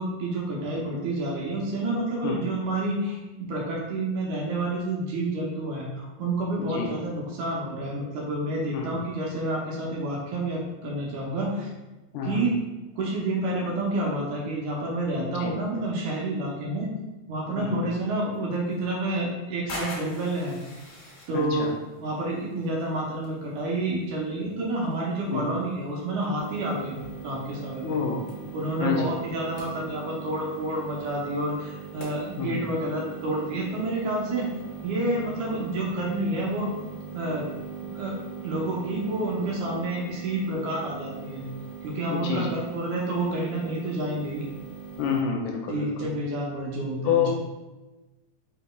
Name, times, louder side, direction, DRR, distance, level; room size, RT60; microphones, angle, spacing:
voice 1, 0.0-11.7 12.2-12.5 13.0-16.9 17.3-20.6 21.3-21.7 22.0-26.9 27.2-27.9 28.5-34.5 34.8-36.7 37.1-37.5 37.9-38.2 38.4-41.4 41.8-44.5 45.7-47.3, right 2 dB, 70° right, -3 dB, 2.1 m, -29 dB
voice 2, 6.6-6.9 8.7-9.0 12.1-12.4 15.3-15.5 17.6-17.8 21.3-21.7 25.3-25.5 27.8-28.2 28.8-29.1 32.4-32.6 42.1-42.5 45.0-46.1 47.0-47.3, left 6 dB, 80° left, 1 dB, 2.1 m, -28 dB
sound 1, 18.3-34.2, left 2 dB, 60° left, 1.7 m, -47 dB
sound 2, 26.4-45.2, right 6 dB, 55° right, 1.1 m, -41 dB
5.2 x 4.1 x 2.3 m, 1.1 s
omnidirectional pair, 3.8 m